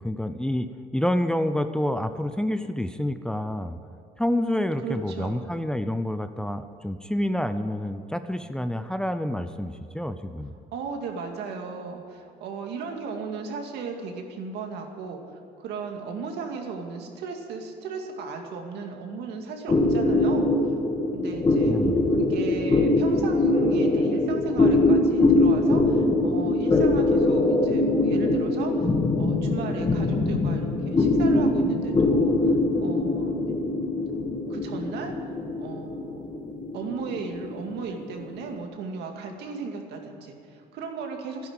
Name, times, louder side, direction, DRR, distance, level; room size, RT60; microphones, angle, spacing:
voice 1, 0.0-3.8 4.2-10.5 21.7-22.1 30.2-30.3, left 1 dB, 5° left, 9 dB, 0.6 m, -28 dB
voice 2, 4.8-5.4 10.7-15.2 15.6-20.5 21.1-21.8 22.2-28.9 29.2-33.5 34.5-35.1 35.6-36.3 36.7-41.5, right 5 dB, 80° right, 3 dB, 2.3 m, -36 dB
sound 1, 19.7-38.4, left 2 dB, 25° left, 1.7 m, -23 dB
12.5 x 10.5 x 9.0 m, 2.4 s
cardioid pair, 110°, 17 cm